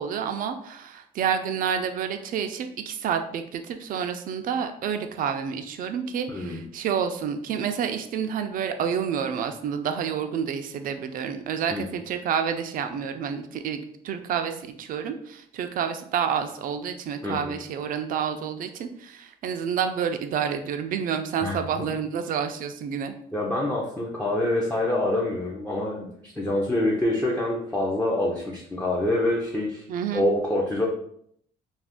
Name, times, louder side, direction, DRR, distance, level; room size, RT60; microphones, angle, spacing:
voice 1, 0.0-13.8 14.0-14.5 14.8-23.1 29.9-30.2, right 7 dB, 55° right, 7 dB, 0.4 m, -29 dB
voice 2, 6.3-6.6 11.7-11.9 17.2-17.5 21.4-21.6 23.3-29.8 30.1-30.9, left 1 dB, 10° left, -4 dB, 0.5 m, -26 dB
2.5 x 2.4 x 3.5 m, 0.68 s
cardioid pair, 110°, 17 cm